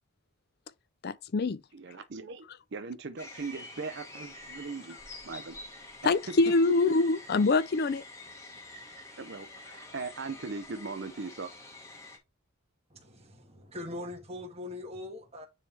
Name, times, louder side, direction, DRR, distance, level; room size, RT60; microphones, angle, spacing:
voice 1, 1.0-1.6 6.0-8.0, left 3 dB, 45° left, 0.4 m, -25 dB
voice 2, 1.7-2.4 2.7-5.0 5.2-5.6 6.0-6.3 9.2-11.5, right 4 dB, 50° right, 0.6 m, -39 dB
sound 1, 3.2-12.2, left 2 dB, 15° left, 1.5 m, -47 dB
voice 3, 12.9-15.5, left 2 dB, 30° right, 1.5 m, -41 dB
9.6 x 3.4 x 3.3 m
head